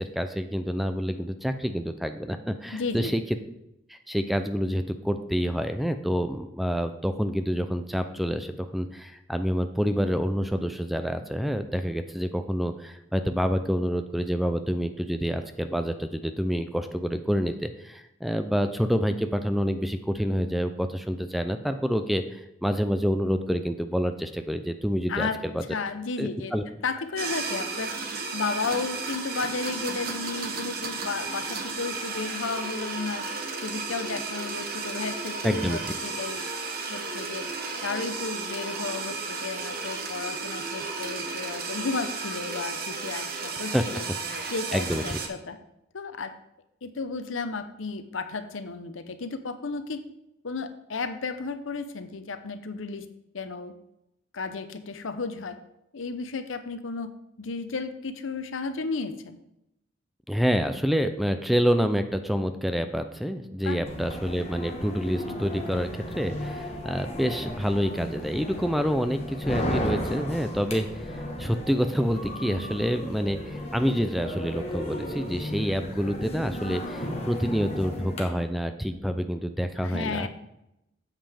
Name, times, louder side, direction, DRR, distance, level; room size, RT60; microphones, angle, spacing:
voice 1, 0.0-3.2 3.9-25.3 25.5-25.6 26.2-26.6 35.4-35.8 43.7-43.8 44.3-45.2 60.3-80.3, equal, ahead, 8 dB, 0.4 m, -27 dB
voice 2, 2.7-3.1 25.1-25.4 25.7-26.5 26.8-27.9 28.3-33.2 33.6-36.4 36.9-37.4 37.8-44.1 44.5-45.6 45.9-46.3 46.8-50.0 50.4-53.1 53.3-53.7 54.3-55.6 55.9-57.1 57.4-59.4 63.6-63.8 79.8-80.3, left 4 dB, 90° left, 10 dB, 0.7 m, -33 dB
sound 1, 27.2-45.3, right 4 dB, 50° right, 1.1 m, -33 dB
sound 2, 63.9-78.2, equal, 30° left, 1.3 m, -34 dB
8.8 x 7.4 x 3.5 m, 0.85 s
head